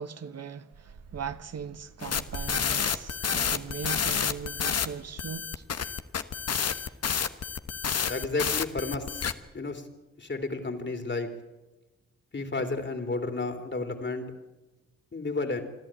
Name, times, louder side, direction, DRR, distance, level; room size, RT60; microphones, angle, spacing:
voice 1, 0.0-5.7, right 7 dB, 60° right, 1.0 m, -39 dB
sound 1, 0.7-5.7, right 4 dB, 75° right, 3.0 m, -47 dB
sound 2, 2.0-4.9 5.2-9.3, left 7 dB, 60° left, 1.2 m, -29 dB
voice 2, 8.1-9.3 9.5-9.9 10.2-11.3 12.3-14.3 15.1-15.6, left 3 dB, 40° left, 3.4 m, -32 dB
27.5 x 11.0 x 9.0 m
cardioid pair, 50°, 29 cm